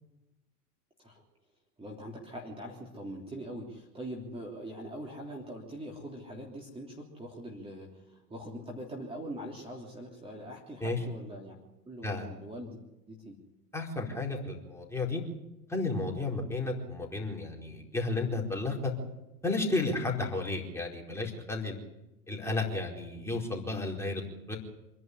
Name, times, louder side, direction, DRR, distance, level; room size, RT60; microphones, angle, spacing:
voice 1, 1.8-11.5 11.8-12.8 13.1-13.4, equal, 10° right, -1 dB, 3.3 m, -42 dB
voice 2, 13.7-15.2 15.7-18.9 19.4-21.7 22.3-24.2 24.5-24.6, left 3 dB, 5° left, -1 dB, 4.4 m, -32 dB
26.5 x 11.0 x 9.9 m, 0.97 s
figure-of-eight pair, 90°, 49 cm